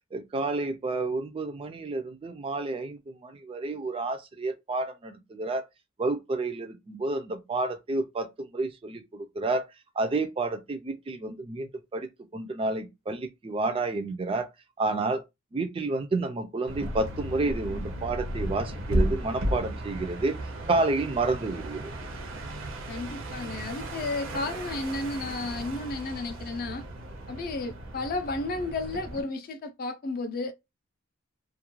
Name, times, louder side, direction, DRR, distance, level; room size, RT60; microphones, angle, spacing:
voice 1, 0.1-5.6 6.0-9.7 10.0-12.1 12.3-14.5 14.8-15.2 15.5-20.4 20.7-21.9, right 3 dB, 25° right, 0.3 m, -30 dB
sound 1, 16.7-29.2, right 1 dB, 70° right, 0.6 m, -34 dB
voice 2, 22.9-26.9 27.3-30.5, left 2 dB, 45° left, 0.4 m, -33 dB
2.3 x 2.1 x 3.0 m
head